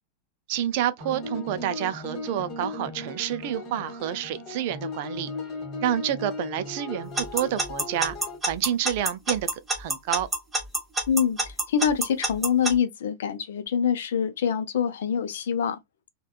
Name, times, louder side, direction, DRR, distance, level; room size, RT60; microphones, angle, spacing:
voice 1, 0.5-5.3 5.8-8.1 8.5-9.5 9.8-10.3, right 11 dB, 50° right, 0.4 m, -28 dB
sound 1, 1.0-8.4, left 2 dB, 30° left, 1.1 m, -37 dB
Alarm / Clock, 7.2-12.7, right 1 dB, 10° right, 1.1 m, -26 dB
voice 2, 11.1-15.8, left 7 dB, 60° left, 0.5 m, -25 dB
3.4 x 2.2 x 2.2 m
figure-of-eight pair, 90°, 0 cm